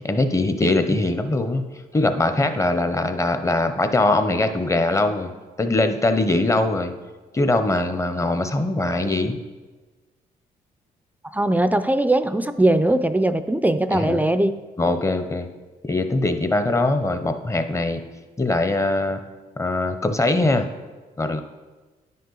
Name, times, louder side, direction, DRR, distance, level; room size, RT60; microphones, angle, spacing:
voice 1, 0.0-1.7 1.9-5.3 5.6-6.9 7.3-9.4 13.9-14.2 14.8-15.5 15.8-18.0 18.4-19.2 19.6-20.7 21.2-21.4, left 2 dB, 20° left, 8 dB, 0.7 m, -22 dB
voice 2, 11.2-14.6, right 1 dB, 10° right, 11 dB, 0.4 m, -20 dB
9.7 x 5.4 x 3.9 m, 1.3 s
cardioid pair, 75°, 16 cm